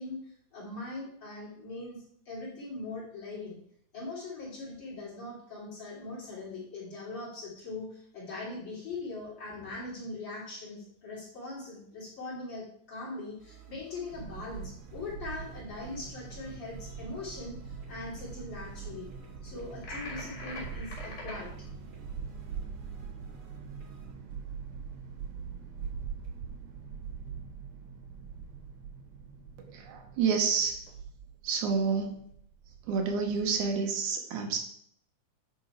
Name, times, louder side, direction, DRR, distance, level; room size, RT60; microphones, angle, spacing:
voice 1, 0.0-3.6 3.9-19.1 19.4-21.5, left 2 dB, 40° left, -7 dB, 3.5 m, -41 dB
sound 1, 13.4-24.1, right 5 dB, 50° right, 0.9 m, -53 dB
sound 2, 14.1-33.7, right 6 dB, 70° right, 2.4 m, -43 dB
sound 3, 19.8-21.4, left 2 dB, 85° left, 3.5 m, -42 dB
voice 2, 29.7-30.8 31.4-32.2 32.9-34.6, right 5 dB, 90° right, 3 dB, 2.5 m, -29 dB
9.6 x 3.9 x 4.6 m, 0.66 s
omnidirectional pair, 3.4 m